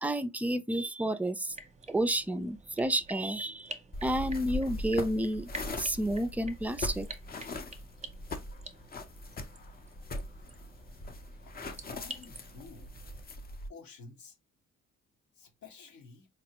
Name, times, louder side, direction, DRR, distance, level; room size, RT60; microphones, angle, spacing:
voice 1, 0.0-1.6 1.9-3.7 4.0-5.5 5.8-7.1, right 1 dB, 5° right, 0.3 m, -30 dB
sound 1, 1.5-13.2, right 2 dB, 25° right, 0.7 m, -49 dB
sound 2, 3.9-13.7, left 1 dB, 30° left, 0.6 m, -40 dB
voice 2, 11.8-12.9 13.7-14.4 15.4-16.3, left 4 dB, 70° left, 1.1 m, -51 dB
4.4 x 2.0 x 2.8 m
cardioid pair, 90°, 30 cm